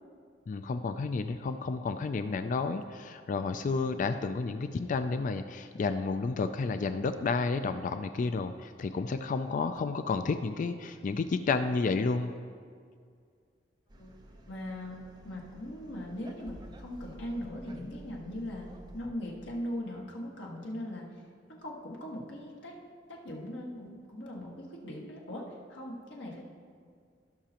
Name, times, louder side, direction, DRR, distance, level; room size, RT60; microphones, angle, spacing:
voice 1, 0.5-12.3, left 4 dB, 45° left, 9 dB, 0.3 m, -31 dB
sound 1, 13.9-19.1, right 1 dB, 25° right, 0.8 m, -51 dB
voice 2, 14.5-18.7 18.9-21.2 21.6-22.7 23.1-26.4, left 1 dB, 80° left, -2 dB, 1.6 m, -40 dB
16.5 x 5.7 x 2.9 m, 2.1 s
head